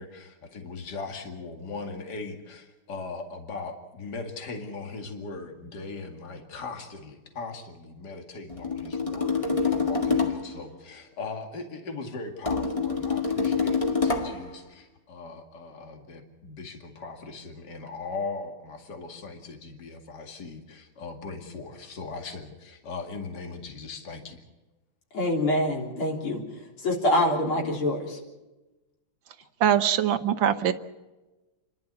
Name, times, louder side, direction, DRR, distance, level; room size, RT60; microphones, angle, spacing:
voice 1, 0.0-24.4, left 4 dB, 50° left, 3 dB, 2.8 m, -39 dB
sound 1, 8.5-10.6 12.4-14.5, left 4 dB, 15° left, 1.9 m, -26 dB
voice 2, 25.1-26.4 26.8-28.2, left 1 dB, 80° left, -1 dB, 4.5 m, -25 dB
voice 3, 29.6-30.7, right 9 dB, 65° right, 9 dB, 1.7 m, -22 dB
29.5 x 12.0 x 8.3 m, 1.1 s
omnidirectional pair, 2.3 m